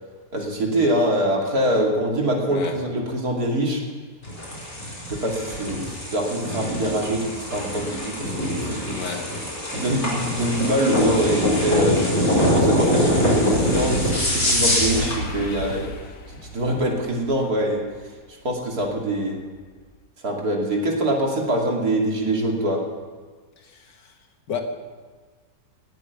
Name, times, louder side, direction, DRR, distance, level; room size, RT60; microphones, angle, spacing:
voice 1, 0.3-3.8 5.1-9.2 9.7-12.0 12.5-15.9 16.5-17.8 18.4-19.4 20.2-22.8, right 1 dB, 60° right, 0 dB, 3.1 m, -24 dB
voice 2, 2.5-2.8 8.8-9.3 23.6-24.1 24.5-24.6, left 6 dB, 80° left, 4 dB, 2.2 m, -32 dB
sound 1, 4.2-15.2, left 1 dB, 40° left, 4.9 m, -23 dB
sound 2, 12.1-19.2 19.6-20.0, left 1 dB, 60° left, 1.6 m, -34 dB
18.0 x 8.6 x 8.3 m, 1.4 s
omnidirectional pair, 1.9 m